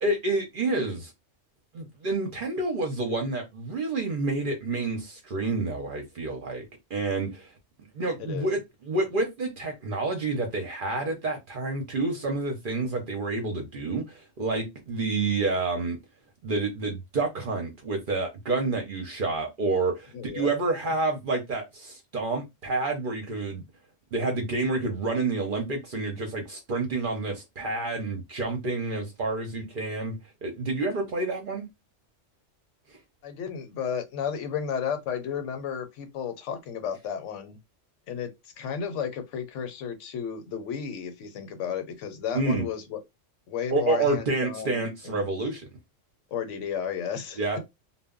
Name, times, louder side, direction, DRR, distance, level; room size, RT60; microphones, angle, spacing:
voice 1, 0.0-1.1 1.7-6.6 6.9-7.5 7.9-16.0 16.4-23.6 24.1-31.7 32.9-33.0 42.3-42.6 43.7-45.7 47.4-47.6, right 3 dB, 55° right, 0.7 m, -29 dB
voice 2, 20.1-20.5 33.2-37.6 38.1-38.3 38.6-43.0 43.5-45.2 46.3-47.6, left 7 dB, 75° left, 0.9 m, -33 dB
2.1 x 2.0 x 3.6 m
omnidirectional pair, 1.3 m